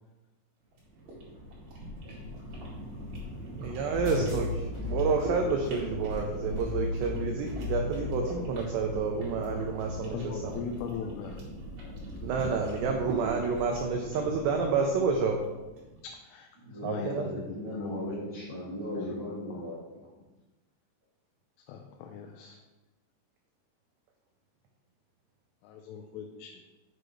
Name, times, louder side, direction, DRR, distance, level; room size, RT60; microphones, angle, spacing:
sound 1, 0.7-16.0, equal, 60° right, 3.6 m, -41 dB
voice 1, 3.6-10.6 12.2-15.4 16.8-17.4, right 4 dB, 90° right, 3 dB, 2.4 m, -29 dB
sound 2, 3.9-10.0, left 3 dB, 40° left, 0.4 m, -36 dB
voice 2, 10.1-11.4 16.0-18.1 19.0-19.1 21.7-22.6 25.6-26.5, left 6 dB, 85° left, 2 dB, 3.1 m, -39 dB
voice 3, 16.6-19.8, left 1 dB, 40° right, -10 dB, 1.0 m, -37 dB
7.7 x 6.6 x 3.1 m, 1.1 s
omnidirectional pair, 5.7 m